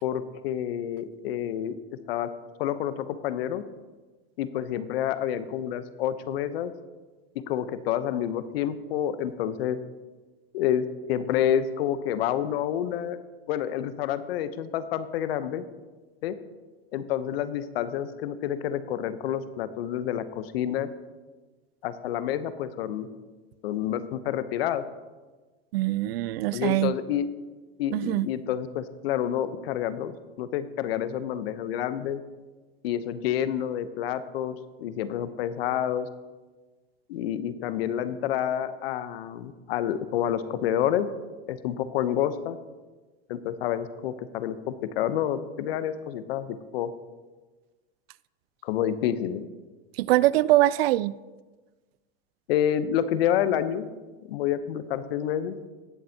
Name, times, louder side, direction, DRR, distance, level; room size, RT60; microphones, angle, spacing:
voice 1, 0.0-1.8 2.1-2.3 2.6-3.6 4.4-6.7 7.3-9.8 10.5-13.2 13.5-15.6 16.2-16.3 16.9-20.9 21.8-23.1 23.6-24.8 26.5-27.3 27.8-32.2 32.8-36.1 37.1-41.1 41.5-42.6 43.3-46.9 48.6-49.4 52.5-53.9 54.3-55.6, left 10 dB, 70° left, 12 dB, 0.9 m, -28 dB
voice 2, 25.7-26.9 27.9-28.3 50.0-51.1, right 16 dB, 70° right, 20 dB, 0.5 m, -23 dB
18.5 x 7.4 x 2.9 m, 1.3 s
hypercardioid pair, 105°, 31 cm